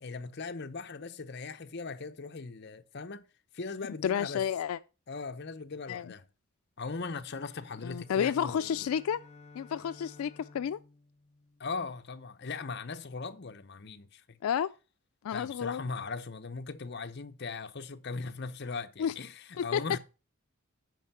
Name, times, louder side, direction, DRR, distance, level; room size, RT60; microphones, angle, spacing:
voice 1, 0.0-3.3 3.5-4.4 5.1-6.3 6.8-8.8 11.6-14.4 15.3-20.0, left 4 dB, 50° left, 0.7 m, -39 dB
voice 2, 4.0-4.8 5.9-6.1 7.8-9.2 9.6-10.8 14.4-14.7 15.2-15.8 19.0-19.1 19.6-19.8, left 8 dB, 85° left, 0.3 m, -31 dB
sound 1, 7.2-11.9, left 3 dB, 30° left, 1.1 m, -55 dB
9.2 x 5.4 x 5.5 m
head